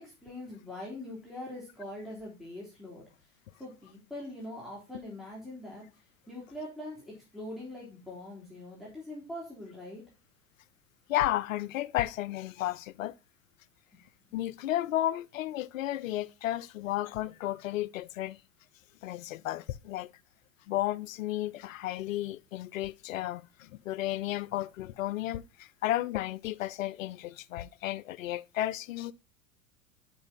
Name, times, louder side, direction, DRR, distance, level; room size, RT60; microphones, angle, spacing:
voice 1, 0.0-3.1 3.6-5.8 6.3-10.0, left 1 dB, ahead, 3.6 m, -43 dB
voice 2, 11.1-13.1 14.3-18.4 19.0-20.1 20.7-29.1, left 14 dB, 65° left, 0.6 m, -33 dB
9.5 x 5.6 x 4.1 m
figure-of-eight pair, 85°, 43 cm